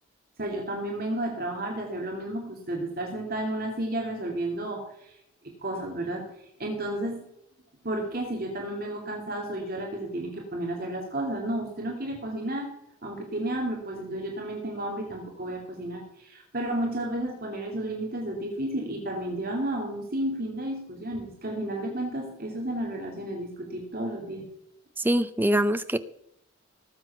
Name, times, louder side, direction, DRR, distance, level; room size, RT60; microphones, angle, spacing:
voice 1, 0.4-5.1 5.6-6.2 6.6-7.2 7.8-12.7 13.0-24.5, right 1 dB, 45° right, -1 dB, 2.7 m, -32 dB
voice 2, 25.0-26.0, right 1 dB, 10° right, 12 dB, 0.5 m, -24 dB
18.5 x 8.0 x 5.9 m, 0.75 s
head